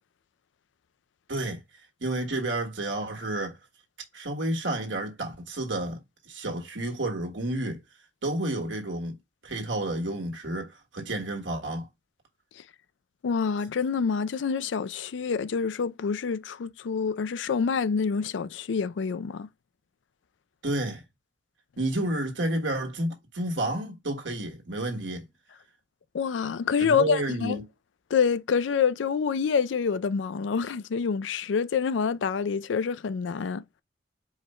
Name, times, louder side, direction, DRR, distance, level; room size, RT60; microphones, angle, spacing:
voice 1, 1.3-1.6 2.0-3.5 4.1-7.8 8.2-9.2 9.4-11.9 20.6-21.0 21.8-25.3 26.8-27.6, right 1 dB, 80° right, 1.6 m, -30 dB
voice 2, 13.2-19.5 26.1-27.6 28.1-33.6, left 6 dB, 80° left, 0.4 m, -27 dB
4.8 x 2.2 x 4.3 m
head